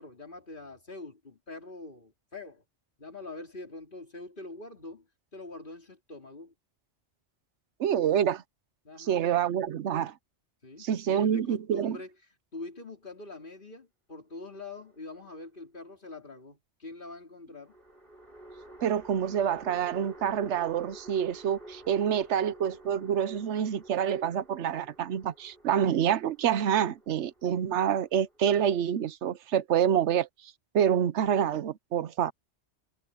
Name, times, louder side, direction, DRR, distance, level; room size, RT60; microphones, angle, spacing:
voice 1, 0.0-2.6 3.0-5.1 5.3-6.5 8.9-9.2 10.6-12.1 12.5-17.8, left 2 dB, 50° left, 3.4 m, -44 dB
voice 2, 7.8-8.4 9.0-10.2 10.8-12.0 18.8-32.3, right 9 dB, 90° right, 1.0 m, -27 dB
sound 1, 14.5-15.4 17.6-29.0, right 1 dB, 50° right, 6.0 m, -51 dB
omnidirectional pair, 1.2 m